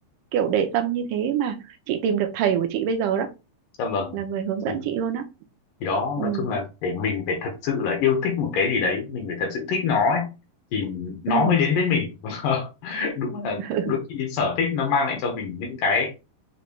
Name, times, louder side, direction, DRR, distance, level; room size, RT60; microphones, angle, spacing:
voice 1, 0.3-1.6 1.9-3.3 4.1-5.2 6.2-6.5 11.3-11.5 13.6-13.9, right 8 dB, 80° right, 2.0 m, -25 dB
voice 2, 3.8-4.2 4.7-4.8 5.8-10.3 10.7-16.1, left 5 dB, 75° left, 2.5 m, -25 dB
7.0 x 3.2 x 2.2 m
omnidirectional pair, 4.1 m